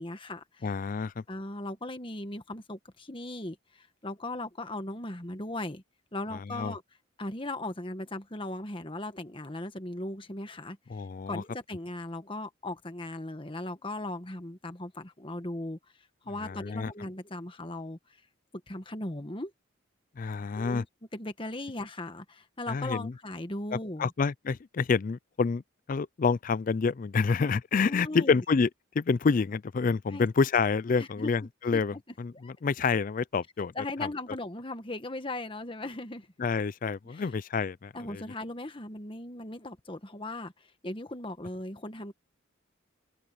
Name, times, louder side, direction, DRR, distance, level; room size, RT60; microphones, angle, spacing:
voice 1, 0.0-0.7 1.3-5.8 6.1-6.8 7.2-10.8 11.3-15.8 16.3-18.0 18.7-19.5 20.5-20.9 21.1-24.1 27.8-28.4 30.1-30.3 31.0-32.0 32.3-32.5 33.7-36.3 37.0-37.3 37.9-42.1, left 2 dB, 25° left, 1.5 m, -38 dB
voice 2, 0.6-1.2 6.5-6.7 10.9-11.4 16.4-16.9 20.2-20.8 22.7-23.1 24.0-25.6 25.9-28.7 29.0-33.7 36.4-38.2, left 5 dB, 40° left, 0.4 m, -28 dB
head